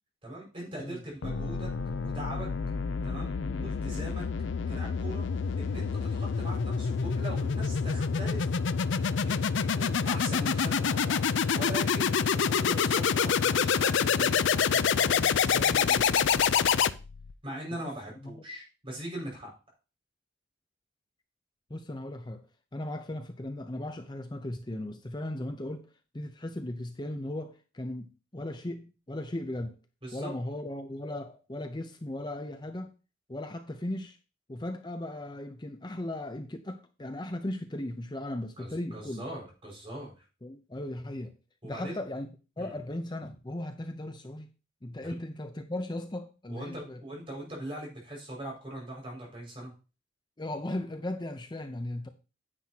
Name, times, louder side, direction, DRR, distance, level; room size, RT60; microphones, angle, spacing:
voice 1, 0.2-1.7 2.0-2.5 3.0-4.2 4.7-5.2 5.6-8.5 9.2-11.2 11.5-16.6 17.4-19.5 30.0-30.3 38.6-40.1 41.6-42.0 42.6-42.7 45.0-45.1 46.5-49.7, right 1 dB, 25° right, 5.6 m, -41 dB
sound 1, 1.2-17.3, left 6 dB, 65° left, 0.4 m, -27 dB
voice 2, 21.7-22.4 22.7-25.9 26.1-29.8 30.1-32.9 33.3-34.2 34.5-39.2 40.4-41.3 41.6-44.5 44.8-47.0 50.4-52.1, left 1 dB, 20° left, 0.7 m, -37 dB
9.9 x 9.3 x 2.9 m
head